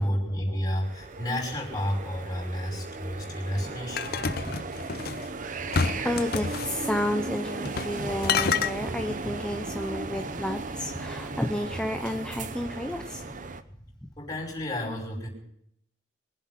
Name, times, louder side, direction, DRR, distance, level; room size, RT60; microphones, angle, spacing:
voice 1, 0.0-4.2 13.8-13.9 14.2-15.3, equal, 20° left, -2 dB, 5.4 m, -31 dB
sound 1, 0.8-13.6, right 3 dB, 45° right, 0.8 m, -36 dB
voice 2, 3.5-3.8 4.2-4.5 6.0-13.4 14.0-14.1, left 1 dB, 5° left, 6 dB, 0.6 m, -32 dB
sound 2, 4.0-5.2 5.7-6.7 7.6-8.0 8.2-8.7, left 5 dB, 55° left, 0.7 m, -28 dB
23.5 x 7.9 x 5.8 m, 0.71 s
head